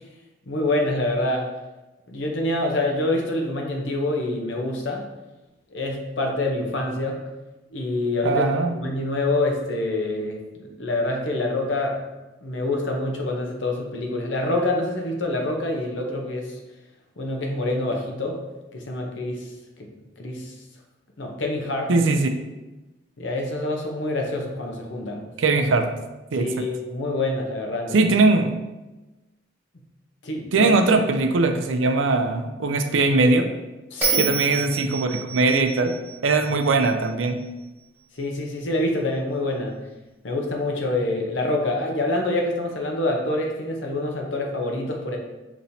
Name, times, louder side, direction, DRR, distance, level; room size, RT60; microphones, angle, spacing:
voice 1, 0.5-1.4 2.1-5.1 5.7-7.2 7.7-8.5 8.7-12.0 12.4-16.6 17.2-18.4 18.7-19.5 19.8-19.9 20.2-20.5 21.2-21.9 23.2-25.3 26.4-28.1 30.2-30.7 33.9-34.3 38.1-39.8 40.2-45.2, left 2 dB, 75° left, 1 dB, 0.8 m, -26 dB
voice 2, 8.2-8.7 21.9-22.3 25.4-25.9 26.3-26.5 27.9-28.5 30.5-33.5 34.2-35.9 36.2-37.4, right 3 dB, 90° right, 6 dB, 0.5 m, -20 dB
Bell, 34.0-37.3, right 6 dB, 10° right, 1.0 m, -29 dB
5.4 x 3.0 x 2.7 m, 1.1 s
head